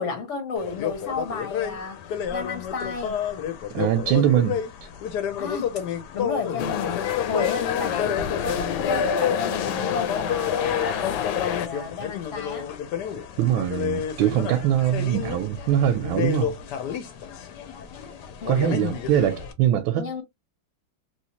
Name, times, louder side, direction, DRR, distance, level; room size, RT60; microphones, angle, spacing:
voice 1, 0.0-2.0 2.3-3.2 5.4-5.8 6.1-12.7 18.4-18.7 19.9-20.2, left 5 dB, 45° left, 1.1 m, -32 dB
sound 1, 0.6-19.5, left 9 dB, 65° left, 1.2 m, -30 dB
voice 2, 3.7-4.6 13.4-16.6 18.5-20.2, right 11 dB, 85° right, 1.4 m, -22 dB
sound 2, 6.6-11.7, left 7 dB, 85° left, 1.4 m, -28 dB
3.1 x 3.0 x 2.8 m
omnidirectional pair, 2.2 m